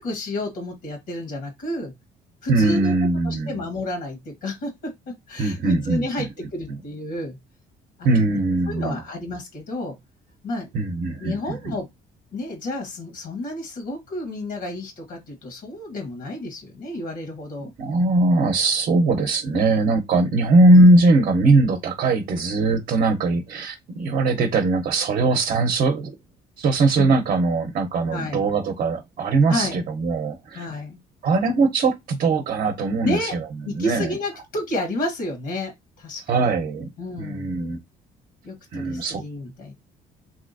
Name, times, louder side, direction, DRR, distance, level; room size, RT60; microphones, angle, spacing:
voice 1, 0.0-1.9 2.4-2.9 3.2-4.9 5.3-6.3 6.5-7.4 8.0-8.1 8.7-9.9 10.4-10.7 11.2-11.9 12.3-17.7 27.0-27.2 28.1-28.4 29.5-29.8 30.5-31.0 33.0-33.4 33.6-36.4 37.0-37.5 38.4-39.7, left 1 dB, 75° left, 1.2 m, -30 dB
voice 2, 2.5-3.6 5.4-6.3 6.7-6.8 8.0-9.0 10.7-11.6 17.6-26.2 26.6-30.7 31.2-34.1 36.3-36.9 37.2-37.8 38.7-39.2, right 2 dB, 50° right, 0.7 m, -20 dB
3.2 x 2.7 x 2.6 m
cardioid pair, 110°, 17 cm